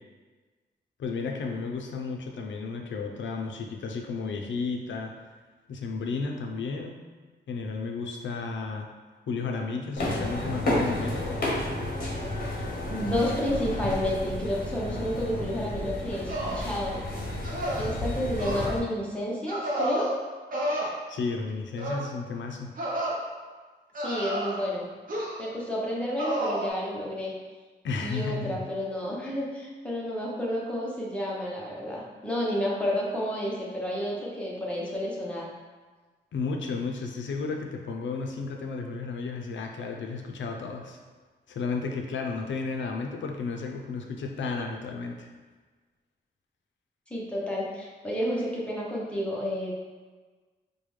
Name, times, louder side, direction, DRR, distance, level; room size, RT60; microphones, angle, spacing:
voice 1, 1.0-5.1 5.7-7.0 7.5-8.9 9.3-11.2 21.1-22.7 27.8-28.7 36.3-41.0 41.5-45.3, left 4 dB, 85° left, 2 dB, 0.5 m, -33 dB
sound 1, 10.0-18.8, left 1 dB, 50° left, 0.8 m, -31 dB
voice 2, 12.5-17.0 17.8-20.1 24.0-24.9 25.4-27.3 28.0-35.5 47.1-49.8, equal, 5° left, -5 dB, 0.7 m, -30 dB
sound 2, 16.3-16.7 17.4-17.9 18.4-18.7 19.5-20.1 20.5-20.9 21.8-22.1 22.8-23.2 23.9-24.7 25.1-25.5 26.2-26.7, right 1 dB, 45° right, 0.7 m, -31 dB
4.8 x 2.2 x 3.1 m, 1.4 s
wide cardioid pair, 160°, 19 cm